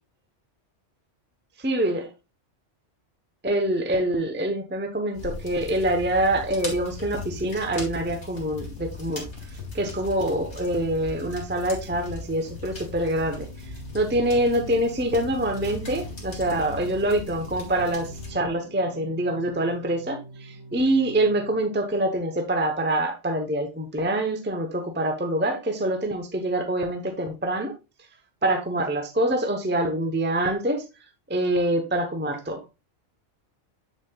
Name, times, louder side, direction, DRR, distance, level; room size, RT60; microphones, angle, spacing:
voice 1, 1.6-2.1 3.4-9.2 9.7-13.5 13.9-27.7 28.4-30.8 31.3-32.7, right 1 dB, 10° right, 5 dB, 0.8 m, -25 dB
sound 1, 5.1-18.3, left 2 dB, 65° left, 2.4 m, -39 dB
Singing, 13.1-22.0, right 1 dB, 80° right, 2.4 m, -43 dB
7.4 x 6.9 x 2.3 m, 0.27 s
omnidirectional pair, 1.2 m